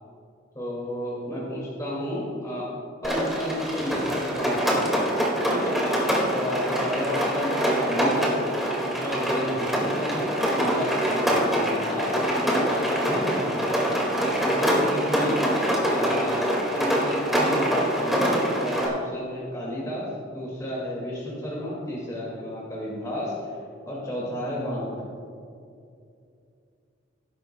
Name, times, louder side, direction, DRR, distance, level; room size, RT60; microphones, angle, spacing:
voice 1, 0.5-2.7 3.0-4.9 5.4-5.8 6.3-8.4 8.8-12.2 12.4-13.6 14.4-15.4 15.9-23.3 23.9-25.0, equal, 20° left, -6 dB, 2.2 m, -32 dB
Rain, 3.0-18.9, equal, ahead, 2.0 m, -24 dB
18.5 x 11.0 x 2.3 m, 2.5 s
head